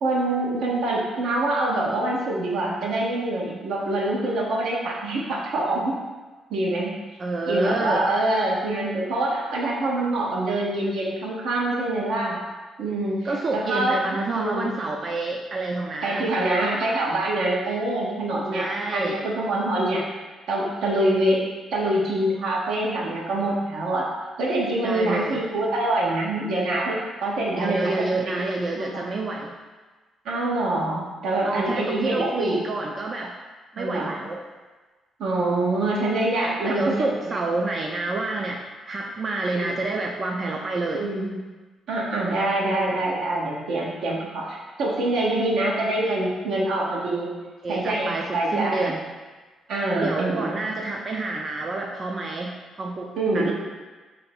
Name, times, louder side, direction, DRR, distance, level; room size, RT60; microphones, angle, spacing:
voice 1, 0.0-5.9 6.5-6.9 7.5-12.4 12.8-13.2 13.5-14.0 14.3-14.8 16.0-18.6 18.9-20.0 20.5-21.4 21.7-24.1 24.4-28.1 28.8-29.0 30.2-32.6 33.8-34.2 35.2-37.4 39.5-39.7 40.9-41.4 41.9-47.3 47.7-48.9 49.7-50.5 53.2-53.5, right 1 dB, 80° right, -3 dB, 0.8 m, -25 dB
voice 2, 7.2-8.1 13.2-16.8 18.5-19.2 24.8-25.4 27.6-29.5 31.4-33.3 33.7-34.4 36.6-41.0 47.4-49.0 50.0-53.5, right 3 dB, 40° right, 0 dB, 0.4 m, -28 dB
3.1 x 2.6 x 4.4 m, 1.3 s
cardioid pair, 90°, 0 cm